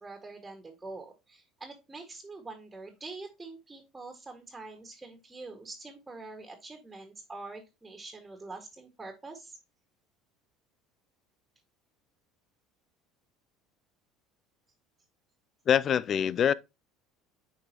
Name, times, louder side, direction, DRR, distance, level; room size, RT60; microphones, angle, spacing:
voice 1, 0.0-9.6, right 3 dB, 15° right, 1.9 m, -45 dB
voice 2, 15.7-16.5, left 8 dB, 45° left, 0.4 m, -24 dB
9.2 x 4.8 x 2.9 m
supercardioid pair, 90°, 0 cm